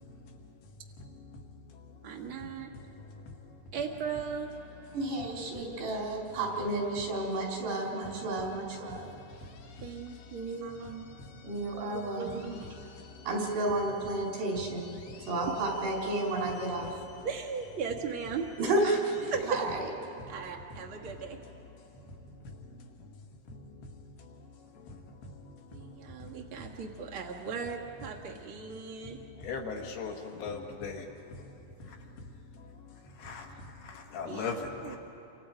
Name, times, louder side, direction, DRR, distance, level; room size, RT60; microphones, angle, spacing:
voice 1, 2.0-2.7 3.7-4.5 9.8-11.1 11.9-12.6 17.2-18.5 19.3-19.7 20.3-21.4 25.7-29.2 34.3-34.5 34.8-35.0, right 6 dB, 60° right, 0 dB, 1.4 m, -37 dB
voice 2, 4.9-9.1 10.6-10.9 11.4-12.7 13.3-14.9 15.3-16.9 18.6-19.7, right 2 dB, 85° right, -2 dB, 6.2 m, -32 dB
voice 3, 29.4-30.1 30.4-31.0 33.3-33.4 34.1-34.7, left 5 dB, 75° left, 1 dB, 3.7 m, -36 dB
29.5 x 25.0 x 4.9 m, 2.9 s
omnidirectional pair, 4.7 m